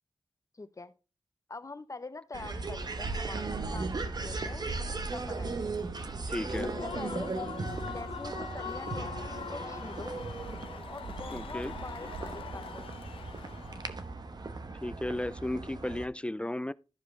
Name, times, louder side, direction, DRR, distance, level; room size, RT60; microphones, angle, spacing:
voice 1, 0.5-0.9 1.5-4.7 5.1-5.7 6.6-7.3 7.8-10.2 10.9-12.9, left 3 dB, 35° left, 1.0 m, -45 dB
sound 1, 2.3-16.1, right 3 dB, 50° right, 1.1 m, -37 dB
Human voice / Cheering / Applause, 6.3-14.0, left 7 dB, 90° left, 0.7 m, -43 dB
voice 2, 6.3-6.7 11.3-11.7 14.8-16.7, left 1 dB, 10° left, 0.4 m, -34 dB
14.0 x 5.0 x 3.2 m
cardioid pair, 60°, 9 cm